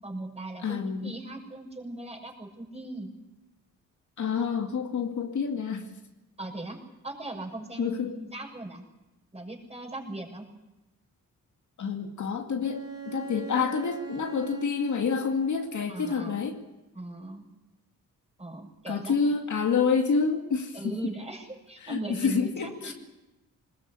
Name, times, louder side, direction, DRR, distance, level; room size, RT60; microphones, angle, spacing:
voice 1, 0.0-3.1 6.4-6.8 7.0-8.9 9.3-10.4 15.9-16.5 16.9-17.4 18.4-19.2 20.7-22.9, right 1 dB, 20° right, 1 dB, 6.6 m, -38 dB
voice 2, 0.6-1.2 4.2-5.9 7.8-8.2 11.8-16.6 18.9-21.0 21.8-22.9, left 5 dB, 60° left, 3 dB, 2.3 m, -28 dB
Bowed string instrument, 12.6-16.1, right 7 dB, 45° right, 2.5 m, -42 dB
21.0 x 20.5 x 8.3 m, 1.0 s
cardioid pair, 95°, 33 cm